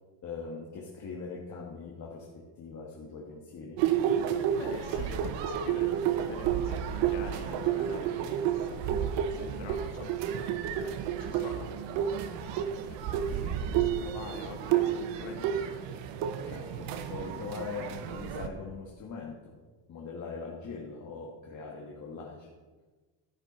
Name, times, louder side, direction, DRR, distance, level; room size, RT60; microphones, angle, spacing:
voice 1, 0.2-3.8 16.4-19.6 19.9-22.5, left 4 dB, 40° left, -3 dB, 1.6 m, -41 dB
sound 1, 3.8-18.5, right 9 dB, 75° right, 1.0 m, -31 dB
voice 2, 4.6-8.8 9.3-12.4 12.7-15.9, left 5 dB, 75° left, 3 dB, 2.0 m, -46 dB
11.0 x 10.5 x 4.3 m, 1.3 s
cardioid pair, 140°, 43 cm